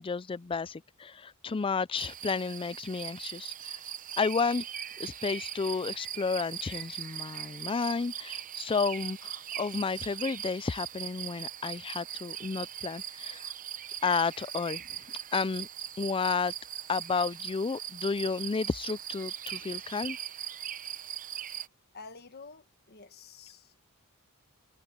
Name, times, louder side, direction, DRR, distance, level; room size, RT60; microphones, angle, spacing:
voice 1, 0.0-3.8 4.2-4.6 5.0-13.5 14.0-14.8 15.3-15.7 16.0-16.5 16.9-20.2, left 4 dB, 25° left, 0.4 m, -32 dB
sound 1, 1.9-21.7, right 10 dB, 35° right, 0.8 m, -40 dB
voice 2, 21.9-23.8, left 4 dB, 45° left, 1.4 m, -49 dB
head